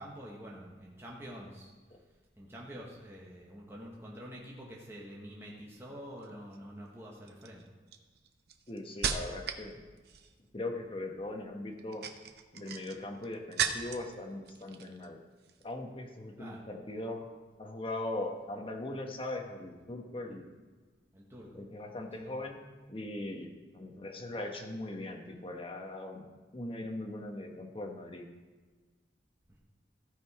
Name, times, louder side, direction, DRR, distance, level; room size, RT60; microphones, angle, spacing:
voice 1, 0.0-1.7 2.4-7.7 16.4-16.6 21.1-21.6 22.2-22.3, equal, 15° right, -3 dB, 1.1 m, -47 dB
sound 1, 6.2-6.6 7.3-9.7 10.0-10.5 11.7-14.1 14.4-15.1 15.4-15.6, right 7 dB, 60° right, 0.7 m, -37 dB
voice 2, 8.7-9.8 10.5-12.0 12.5-15.2 15.6-17.3 17.6-20.5 21.6-22.6 22.9-23.5 23.7-26.2 26.5-28.2, left 2 dB, 30° left, 2 dB, 1.1 m, -40 dB
14.5 x 5.2 x 4.8 m, 1.4 s
head